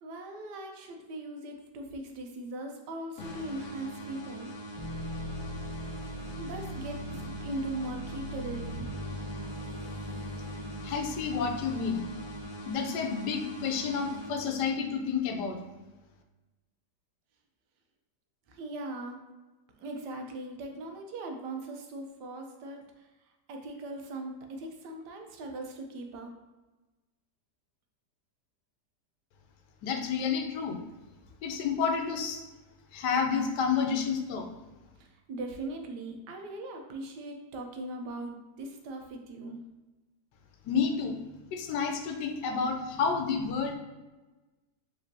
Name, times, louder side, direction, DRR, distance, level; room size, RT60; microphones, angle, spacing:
voice 1, 0.0-4.5 6.1-8.9 18.5-19.2 19.7-26.3 35.0-39.6, right 2 dB, 85° right, 3 dB, 1.3 m, -40 dB
sound 1, 3.2-14.9, right 1 dB, 60° left, 1.1 m, -43 dB
sound 2, 4.7-12.7, equal, 40° right, 0.5 m, -40 dB
voice 2, 10.8-12.0 12.7-15.6 29.8-30.8 31.4-32.4 32.9-34.5 40.6-41.1 41.5-43.8, left 6 dB, 85° left, 4 dB, 1.3 m, -30 dB
5.2 x 3.5 x 2.7 m, 1.2 s
omnidirectional pair, 1.8 m